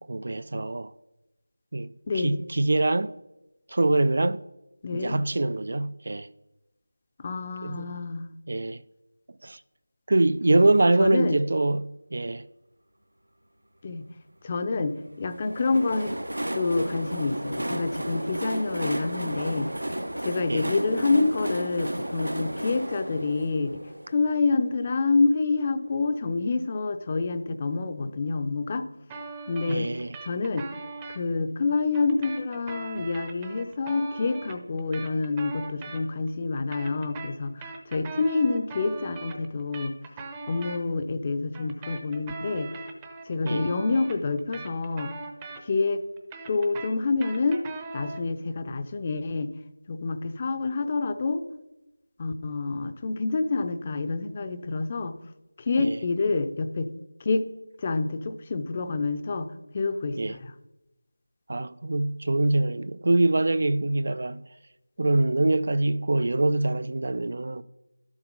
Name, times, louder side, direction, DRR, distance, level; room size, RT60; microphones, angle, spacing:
voice 1, 0.1-0.9 1.7-3.1 3.7-4.4 4.9-6.3 7.6-7.9 8.5-8.8 9.4-9.6 10.1-12.4 20.5-20.7 29.7-30.2 43.4-43.7 55.8-56.0 60.2-60.4 61.5-64.4 65.0-67.6, right 2 dB, 50° right, 0.4 m, -24 dB
voice 2, 2.1-2.4 4.8-5.2 7.2-8.3 11.0-11.4 13.8-14.0 14.4-16.1 16.5-19.7 20.2-28.9 29.5-29.9 30.2-30.7 31.1-39.9 40.5-42.7 43.3-45.1 45.7-46.0 46.5-47.6 47.9-49.5 49.9-51.4 52.2-55.1 55.6-56.9 57.2-57.5 57.8-59.5 59.7-60.5, left 3 dB, 25° left, 0.6 m, -27 dB
Train, 15.3-24.9, right 1 dB, 80° right, 1.2 m, -33 dB
sound 1, 29.1-31.2 31.9-36.3 36.6-40.8 41.5-45.9 46.2-48.3, right 3 dB, 15° right, 0.7 m, -40 dB
12.0 x 7.2 x 5.3 m
figure-of-eight pair, 170°, 0 cm